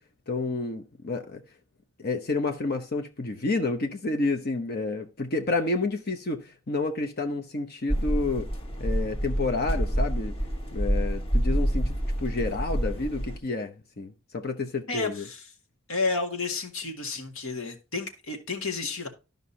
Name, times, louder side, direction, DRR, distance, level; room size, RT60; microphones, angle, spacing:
voice 1, 0.3-1.4 2.0-8.5 8.8-10.3 10.7-15.2, left 3 dB, 45° left, 0.9 m, -30 dB
sound 1, 7.9-13.4, equal, 25° left, 1.3 m, -27 dB
voice 2, 14.9-15.5 15.9-19.1, left 3 dB, 75° left, 1.9 m, -31 dB
13.0 x 5.3 x 2.7 m
head